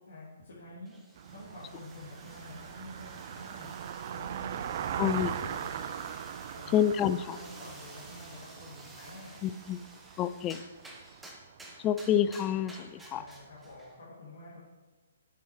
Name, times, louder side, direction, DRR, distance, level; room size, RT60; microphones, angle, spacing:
voice 1, 0.0-1.0 1.3-5.0 5.2-6.2 6.6-6.8 7.3-9.4 13.1-14.6, left 2 dB, 65° left, -8 dB, 2.3 m, -49 dB
sound 1, 0.9-14.0, right 1 dB, 5° right, 1.0 m, -53 dB
Car passing by, 1.2-13.5, right 9 dB, 45° right, 0.4 m, -41 dB
voice 2, 5.0-5.3 6.7-7.4 9.4-9.8 10.2-10.6 11.8-13.2, left 10 dB, 25° left, 14 dB, 0.3 m, -28 dB
7.6 x 5.5 x 4.8 m, 1.3 s
figure-of-eight pair, 130°, 0 cm